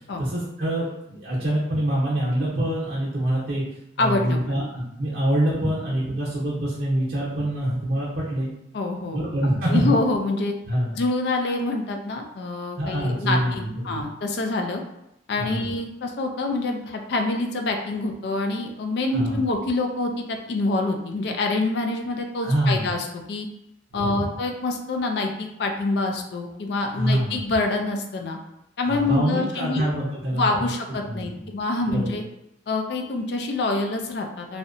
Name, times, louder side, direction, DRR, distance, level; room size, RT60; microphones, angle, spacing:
voice 1, 0.2-3.6 4.0-8.5 9.1-9.9 10.7-11.0 12.8-14.0 15.4-15.7 19.1-19.3 22.4-22.8 23.9-24.3 26.9-27.4 28.9-30.7 31.0-31.2 31.9-32.1, right 1 dB, 50° right, -7 dB, 0.6 m, -25 dB
voice 2, 4.0-4.6 8.7-10.5 10.9-14.8 15.3-23.5 23.9-28.4 28.8-29.9 30.3-32.2 32.7-34.6, left 2 dB, 60° left, 3 dB, 0.4 m, -26 dB
2.7 x 2.1 x 2.5 m, 0.84 s
head